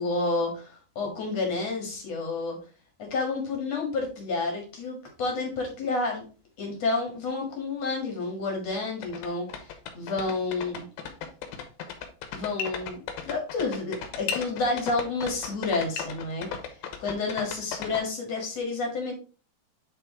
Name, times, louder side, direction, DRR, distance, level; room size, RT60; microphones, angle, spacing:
voice 1, 0.0-2.6 3.0-6.2 6.6-10.9 12.3-16.7 17.0-19.1, left 3 dB, 55° left, 1 dB, 2.0 m, -30 dB
sound 1, 8.8-8.9 9.0-18.0, left 7 dB, 75° left, 2.7 m, -35 dB
9.3 x 3.9 x 3.7 m, 0.37 s
omnidirectional pair, 5.0 m